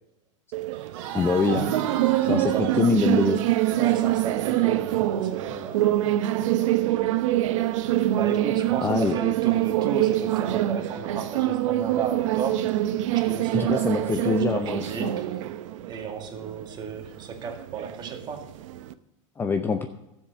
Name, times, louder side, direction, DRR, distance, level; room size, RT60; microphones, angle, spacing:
sound 1, 0.5-18.9, right 14 dB, 70° right, 0.8 m, -25 dB
Crowd, 0.7-5.7, right 9 dB, 55° right, 2.1 m, -38 dB
voice 1, 1.1-1.7 2.2-3.4 8.8-9.2 13.5-15.1 19.4-19.9, left 5 dB, 15° left, 7 dB, 0.6 m, -24 dB
voice 2, 2.4-3.1 3.7-5.8 8.1-12.9 13.1-15.3 15.9-18.5, right 6 dB, 25° right, 3 dB, 2.0 m, -34 dB
12.5 x 7.5 x 6.6 m, 0.92 s
supercardioid pair, 140°, 17 cm